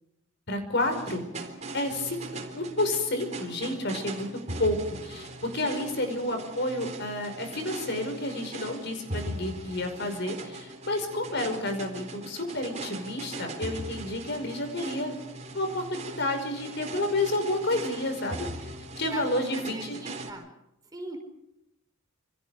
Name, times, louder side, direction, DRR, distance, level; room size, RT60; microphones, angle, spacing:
voice 1, 0.5-1.2 1.7-4.3 4.6-15.2 15.5-18.7 19.0-20.0, left 1 dB, 60° left, 6 dB, 5.6 m, -30 dB
sound 1, 0.8-20.3, right 2 dB, 35° right, 3.9 m, -40 dB
voice 2, 19.7-20.5 20.9-21.2, right 2 dB, 20° right, 4 dB, 5.5 m, -40 dB
28.0 x 27.0 x 5.1 m, 0.82 s
head